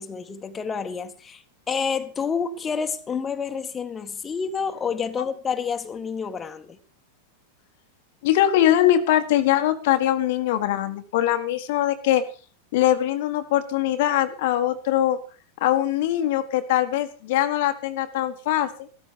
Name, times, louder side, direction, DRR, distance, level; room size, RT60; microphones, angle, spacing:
voice 1, 0.0-6.8, left 6 dB, 20° left, 1.7 m, -29 dB
voice 2, 8.2-12.2 12.7-15.2 15.6-18.9, left 12 dB, 50° left, 1.5 m, -22 dB
15.0 x 13.5 x 5.3 m
figure-of-eight pair, 90°, 0 cm